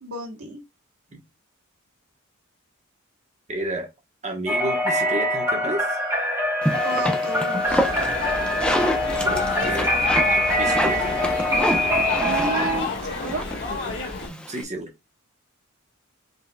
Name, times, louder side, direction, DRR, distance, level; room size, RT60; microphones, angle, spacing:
voice 1, 0.0-0.6 6.8-7.6 12.2-13.4, right 1 dB, 90° right, 1.3 m, -31 dB
voice 2, 3.5-3.9 4.2-6.0 9.2-9.9 10.6-11.1 13.7-14.9, right 1 dB, 35° right, 1.2 m, -31 dB
sound 1, 4.5-12.8, left 1 dB, 15° right, 2.5 m, -24 dB
sound 2, 6.6-14.6, equal, 5° left, 0.7 m, -28 dB
sound 3, 7.6-14.3, left 3 dB, 55° left, 1.8 m, -30 dB
5.4 x 3.8 x 2.3 m
head